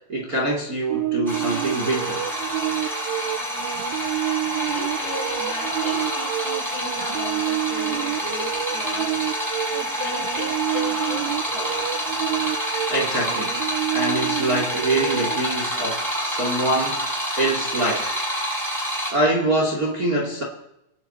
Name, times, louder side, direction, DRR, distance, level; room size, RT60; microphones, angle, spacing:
voice 1, 0.1-2.3 12.9-13.6 13.9-17.1 17.4-18.0 19.1-20.4, right 1 dB, 25° right, 0 dB, 2.1 m, -24 dB
sound 1, 0.9-15.4, right 16 dB, 85° right, 2.8 m, -29 dB
sound 2, 1.3-19.1, equal, 5° right, 6.2 m, -28 dB
voice 2, 4.7-9.1 9.7-12.2 17.9-18.1, left 2 dB, 65° left, -2 dB, 7.2 m, -36 dB
25.5 x 10.0 x 4.3 m, 0.82 s
omnidirectional pair, 4.7 m